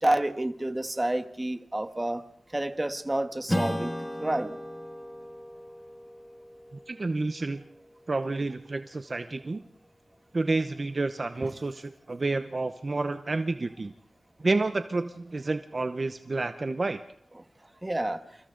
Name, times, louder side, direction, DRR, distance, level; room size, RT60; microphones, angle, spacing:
voice 1, 0.0-2.2 2.5-3.9 4.2-4.6 11.4-11.5 17.8-18.2, right 1 dB, 20° right, 8 dB, 1.4 m, -29 dB
Strum, 3.5-8.4, left 1 dB, 15° left, 2.2 m, -36 dB
voice 2, 6.9-7.6 8.1-9.6 10.3-13.9 14.4-17.0, right 3 dB, 45° right, 9 dB, 0.8 m, -29 dB
28.5 x 27.5 x 3.9 m, 0.69 s
wide cardioid pair, 90°, 0 cm